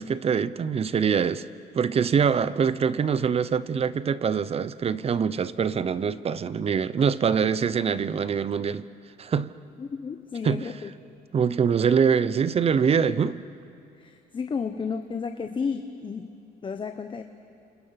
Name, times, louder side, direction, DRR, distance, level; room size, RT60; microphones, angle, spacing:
voice 1, 0.0-1.5 1.7-8.9 9.2-9.5 10.4-10.7 11.3-13.4, right 6 dB, 35° right, 0.8 m, -24 dB
voice 2, 9.8-10.9 14.0-16.3 16.6-17.2, left 5 dB, 30° left, 1.1 m, -32 dB
30.0 x 27.5 x 5.9 m
cardioid pair, 110°, 17 cm